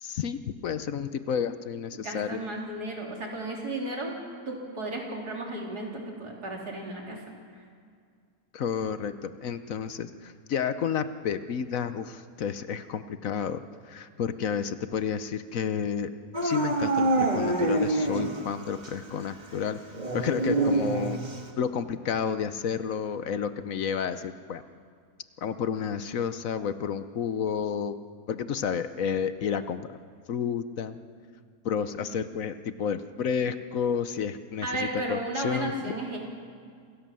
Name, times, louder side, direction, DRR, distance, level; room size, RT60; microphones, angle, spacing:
voice 1, 0.0-2.4 8.5-16.1 16.4-19.8 20.1-21.2 21.6-24.6 25.4-28.0 28.3-30.0 30.3-31.0 31.6-35.7, left 7 dB, 65° left, 11 dB, 1.1 m, -31 dB
voice 2, 1.9-4.2 4.5-7.2 31.8-32.1 34.6-36.2, right 2 dB, 80° right, -1 dB, 4.2 m, -34 dB
Dog / Siren, 16.3-18.5 18.8-18.9 19.9-21.5, right 2 dB, 25° right, 1.9 m, -26 dB
27.0 x 16.5 x 7.6 m, 2.1 s
omnidirectional pair, 1.7 m